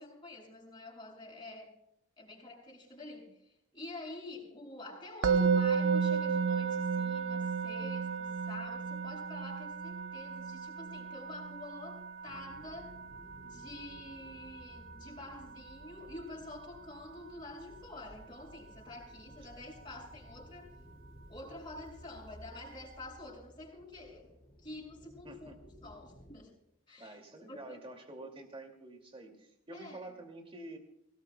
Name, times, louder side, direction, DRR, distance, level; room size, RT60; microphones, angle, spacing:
voice 1, 0.0-1.7 2.2-13.0 13.4-20.7 21.3-24.3 24.6-26.5 26.9-27.2 27.5-27.8 29.7-30.1, left 2 dB, 25° left, -4 dB, 6.5 m, -48 dB
Musical instrument, 5.2-16.3, right 6 dB, 65° right, 0.6 m, -34 dB
sound 1, 12.3-26.4, equal, 5° left, 3.3 m, -56 dB
voice 2, 25.2-25.6 27.0-30.8, right 1 dB, 25° right, 4 dB, 2.4 m, -48 dB
24.0 x 18.0 x 2.3 m, 0.77 s
head